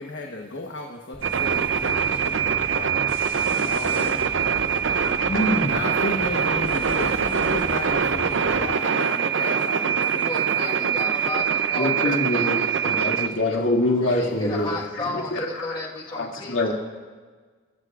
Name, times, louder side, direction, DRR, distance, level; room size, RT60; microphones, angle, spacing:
voice 1, 0.0-4.9 5.6-11.4, left 2 dB, 65° left, 0 dB, 1.2 m, -35 dB
sound 1, 1.1-8.8, left 1 dB, 45° left, 2.3 m, -38 dB
sound 2, 1.2-13.3, right 7 dB, 70° right, 0.6 m, -23 dB
voice 2, 5.2-5.8 7.3-7.6 11.8-14.8 15.1-15.8 16.1-16.7, left 1 dB, 85° left, -1 dB, 2.5 m, -25 dB
voice 3, 10.0-13.6 13.9-16.7, left 2 dB, 25° left, -2 dB, 1.6 m, -35 dB
30.0 x 15.0 x 2.5 m, 1.4 s
head